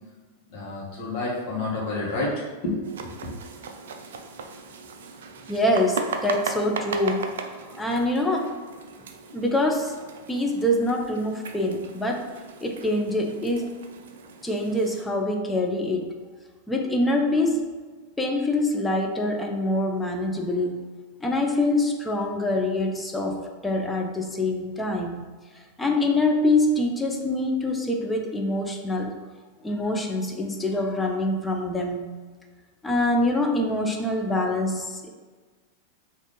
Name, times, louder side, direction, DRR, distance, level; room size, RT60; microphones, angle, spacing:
voice 1, 0.4-3.4, left 2 dB, 45° left, -4 dB, 1.2 m, -30 dB
sound 1, 2.8-15.0, right 4 dB, 60° right, 0.3 m, -37 dB
voice 2, 5.5-7.3 7.8-8.5 9.3-9.9 10.3-12.3 12.6-13.8 14.4-16.1 16.7-17.6 18.2-20.9 21.2-25.3 25.8-29.1 29.6-32.1 32.8-35.1, left 1 dB, 10° left, 2 dB, 0.5 m, -25 dB
3.7 x 2.6 x 3.5 m, 1.4 s
figure-of-eight pair, 90°, 0 cm